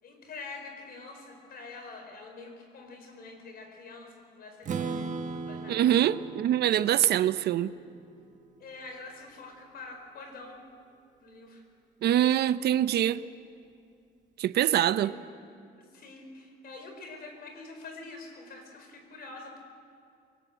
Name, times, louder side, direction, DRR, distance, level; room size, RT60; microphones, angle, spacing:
voice 1, 0.0-6.0 8.6-10.6 11.2-11.6 15.0-15.3 15.9-19.6, left 3 dB, 55° left, 4.7 m, -46 dB
Strum, 4.6-8.6, right 5 dB, 40° right, 1.3 m, -38 dB
voice 2, 5.7-7.7 12.0-13.2 14.4-15.1, right 11 dB, 60° right, 0.6 m, -24 dB
23.5 x 19.5 x 7.9 m
cardioid pair, 130°, 19 cm